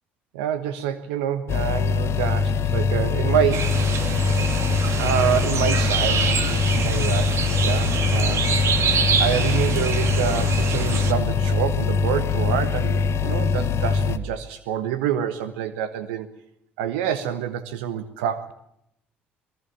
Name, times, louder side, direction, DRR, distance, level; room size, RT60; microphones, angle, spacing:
voice 1, 0.3-3.9 5.0-16.3 16.8-18.5, right 9 dB, 75° right, 12 dB, 1.2 m, -27 dB
sound 1, 1.5-14.2, left 5 dB, 50° left, 1.7 m, -23 dB
sound 2, 3.5-11.1, right 6 dB, 55° right, 2.7 m, -26 dB
26.5 x 20.0 x 7.4 m, 0.77 s
figure-of-eight pair, 50°, 6 cm